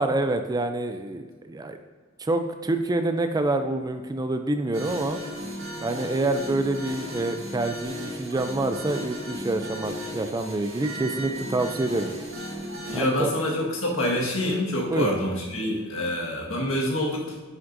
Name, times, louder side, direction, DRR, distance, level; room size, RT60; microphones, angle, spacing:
voice 1, 0.0-1.8 2.2-5.2 5.8-12.1 12.9-13.3 14.9-15.1, right 2 dB, 20° right, 7 dB, 0.4 m, -27 dB
sound 1, 4.7-13.0, equal, 75° right, 1.7 m, -35 dB
voice 2, 12.9-17.4, left 1 dB, 75° left, -2 dB, 1.6 m, -26 dB
9.5 x 6.1 x 2.6 m, 1.5 s
head